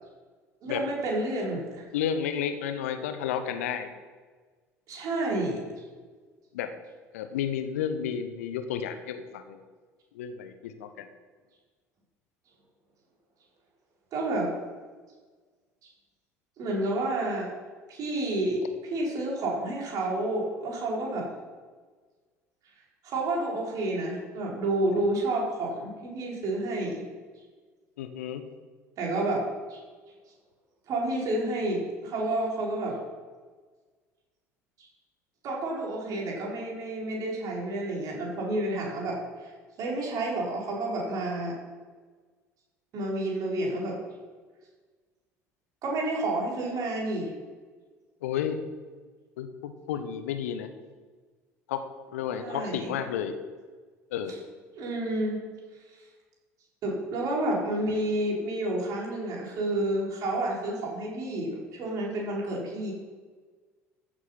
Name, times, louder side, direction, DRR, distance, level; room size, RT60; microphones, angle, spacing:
voice 1, 0.6-1.8 4.9-5.6 14.1-14.5 16.6-17.5 17.9-18.6 18.9-21.3 23.0-27.0 29.0-29.4 29.7-29.8 30.9-33.0 34.8-34.9 35.4-39.5 39.8-41.5 42.9-44.0 45.8-47.3 52.4-52.9 54.7-55.4 55.9-56.0 56.8-62.9, right 1 dB, 45° right, -3 dB, 4.6 m, -30 dB
voice 2, 1.9-3.9 6.5-6.7 7.1-9.6 10.1-11.1 24.9-25.0 28.0-28.4 48.2-48.6 49.4-50.7 51.7-51.8 52.1-53.4 54.1-54.4, left 8 dB, 65° left, 9 dB, 1.0 m, -32 dB
14.0 x 8.1 x 5.7 m, 1.4 s
figure-of-eight pair, 60°, 8 cm